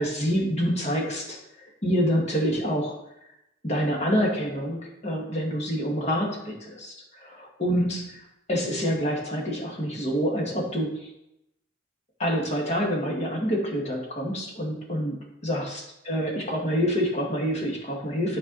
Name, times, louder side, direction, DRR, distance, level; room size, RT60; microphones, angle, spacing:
voice 1, 0.0-2.9 3.6-11.1 12.2-15.1 15.4-18.4, equal, 35° left, -1 dB, 1.8 m, -27 dB
9.7 x 4.7 x 4.0 m, 0.85 s
head